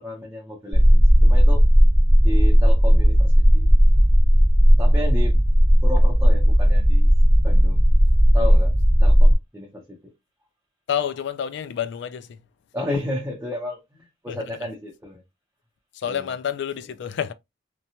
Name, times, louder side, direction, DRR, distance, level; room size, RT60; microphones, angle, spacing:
voice 1, 0.0-1.7 2.2-3.7 4.8-5.4 5.8-7.1 7.4-7.8 8.3-8.7 9.0-10.0 12.7-13.8 14.2-15.2 16.1-16.3, left 2 dB, 10° right, 0.6 m, -32 dB
sound 1, 0.7-9.4, equal, 20° left, 1.1 m, -15 dB
voice 2, 10.9-12.4 14.3-14.4 16.0-17.3, left 8 dB, 60° left, 0.3 m, -28 dB
2.7 x 2.2 x 2.7 m
head